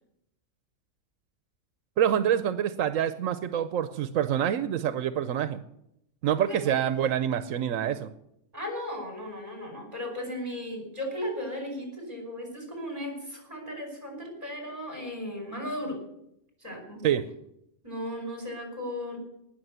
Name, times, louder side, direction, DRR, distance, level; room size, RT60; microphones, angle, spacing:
voice 1, 2.0-5.6 6.2-8.1 17.0-17.2, right 9 dB, 90° right, 12 dB, 1.1 m, -26 dB
voice 2, 8.5-16.0 16.6-17.0 17.8-19.2, left 1 dB, 30° right, 2 dB, 5.5 m, -36 dB
19.0 x 6.8 x 8.1 m, 0.79 s
omnidirectional pair, 1.3 m